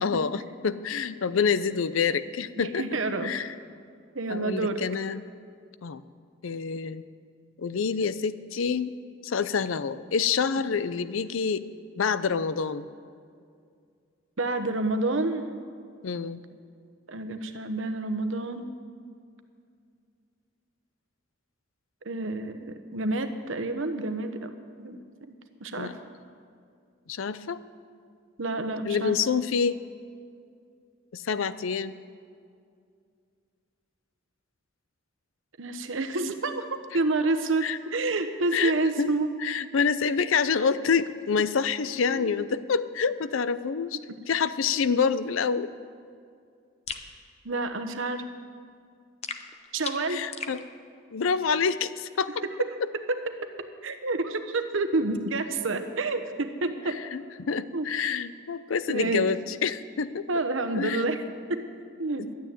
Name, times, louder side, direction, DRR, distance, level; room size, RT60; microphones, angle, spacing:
voice 1, 0.0-2.8 3.2-3.5 4.3-5.2 5.8-6.0 6.4-7.0 7.6-9.0 9.2-11.7 12.0-12.9 16.0-16.4 25.8-25.9 27.1-27.6 28.8-29.8 31.1-32.0 37.6-37.8 38.5-39.1 39.4-44.0 44.3-45.7 50.1-50.6 51.1-52.4 52.8-52.9 56.9-60.4 60.7-61.1, left 6 dB, 90° left, 14 dB, 0.5 m, -27 dB
voice 2, 2.6-3.3 4.1-4.8 14.4-15.4 17.1-18.7 22.0-25.0 25.6-25.9 28.4-29.2 35.6-39.3 42.1-42.3 47.4-48.2 49.7-50.2 53.8-57.0 57.7-57.9 58.9-59.3 60.3-61.2 61.5-61.7 62.0-62.3, right 2 dB, 80° right, 8 dB, 1.0 m, -29 dB
sound 1, 46.9-47.1 49.2-50.6, left 6 dB, 35° left, 0.7 m, -37 dB
12.0 x 9.2 x 9.1 m, 2.3 s
head